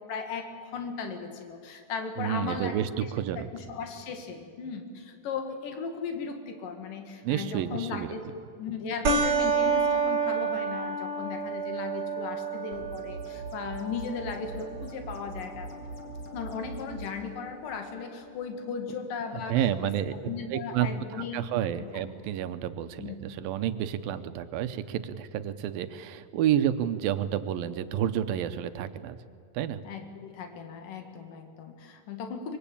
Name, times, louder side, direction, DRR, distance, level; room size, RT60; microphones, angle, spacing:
voice 1, 0.0-2.8 3.4-8.2 8.6-15.7 16.3-19.6 19.8-19.9 20.3-21.5 21.8-21.9 23.0-23.2 29.8-32.6, left 5 dB, 70° left, 5 dB, 3.6 m, -37 dB
voice 2, 2.2-3.5 7.2-8.2 19.3-20.2 20.5-20.9 21.3-29.2 29.5-29.8, right 10 dB, 85° right, 11 dB, 2.7 m, -30 dB
sound 1, 9.1-18.0, right 4 dB, 50° right, 2.2 m, -31 dB
sound 2, 12.7-17.1, right 2 dB, 35° left, 3.3 m, -42 dB
24.5 x 22.0 x 8.6 m, 2.4 s
omnidirectional pair, 4.1 m